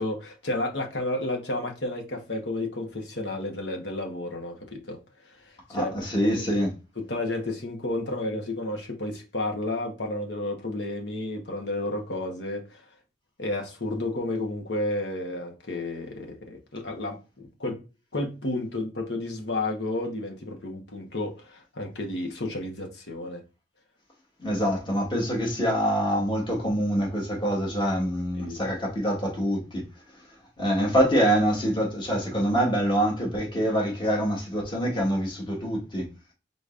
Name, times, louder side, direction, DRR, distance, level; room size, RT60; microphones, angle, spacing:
voice 1, 0.0-5.0 5.2-6.4 7.1-12.8 13.4-17.8 18.1-23.4 28.3-28.6, left 2 dB, 75° left, 1.2 m, -32 dB
voice 2, 5.7-6.7 24.4-29.9 30.6-36.1, equal, 25° left, 1.5 m, -25 dB
5.2 x 3.9 x 2.5 m
head